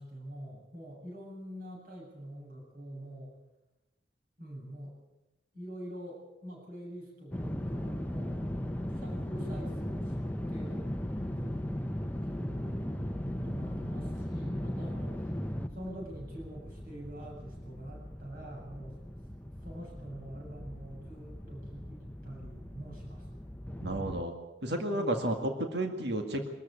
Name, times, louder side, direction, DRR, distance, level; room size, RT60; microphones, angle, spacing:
voice 1, 0.0-3.3 4.4-4.9 5.5-8.4 8.9-10.1 10.5-11.0 11.3-11.9 12.3-15.3 15.7-19.0 19.6-23.4 24.9-25.3, equal, 50° right, -1 dB, 7.4 m, -45 dB
sound 1, 7.3-24.2, equal, 10° left, 0.8 m, -38 dB
voice 2, 23.8-24.3 24.6-26.5, right 1 dB, 70° right, 4 dB, 2.1 m, -32 dB
24.0 x 13.5 x 8.4 m, 1.0 s
head